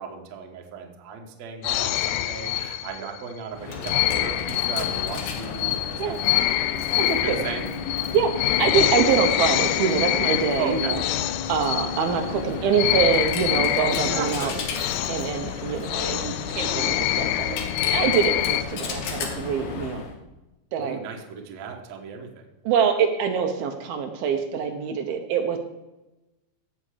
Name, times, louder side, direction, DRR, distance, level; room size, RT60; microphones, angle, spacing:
voice 1, 0.0-6.6 7.2-7.7 10.6-11.0 13.9-14.7 20.8-22.3, right 6 dB, 55° right, 2 dB, 2.2 m, -36 dB
sound 1, 1.6-3.2 3.8-12.4 12.7-18.6, left 14 dB, 80° left, 2.2 m, -26 dB
Coin (dropping), 3.5-20.2, left 5 dB, 65° left, 2.5 m, -33 dB
voice 2, 7.0-7.5 8.1-11.0 11.5-14.5 15.1-20.1 20.7-21.0 22.6-25.6, right 6 dB, 75° right, 4 dB, 2.7 m, -25 dB
16.0 x 7.1 x 5.0 m, 1.0 s
omnidirectional pair, 4.5 m